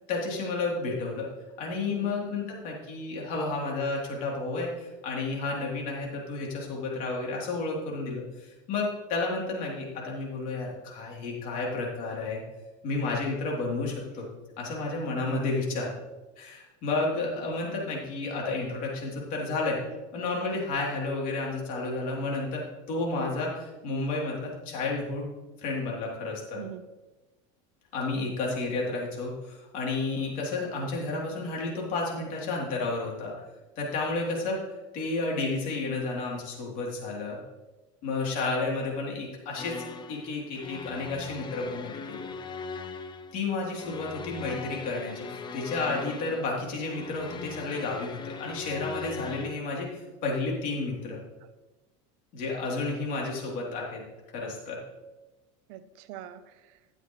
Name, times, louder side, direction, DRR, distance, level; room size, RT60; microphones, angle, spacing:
voice 1, 0.1-1.3 1.6-12.4 12.8-14.2 14.6-15.9 16.4-19.8 20.1-25.3 25.6-26.6 27.9-33.3 33.8-34.6 34.9-37.4 38.0-39.7 40.1-42.3 43.3-51.2 52.3-54.0 54.3-54.8, left 3 dB, 55° left, -2 dB, 3.4 m, -31 dB
voice 2, 1.9-2.2 26.5-26.8 30.6-30.7 30.9-31.1 51.4-51.5 55.7-56.8, right 11 dB, 70° right, 12 dB, 0.8 m, -44 dB
sound 1, 39.6-49.6, left 5 dB, 30° left, 0.7 m, -40 dB
13.0 x 8.8 x 3.2 m, 1.1 s
supercardioid pair, 120°, 16 cm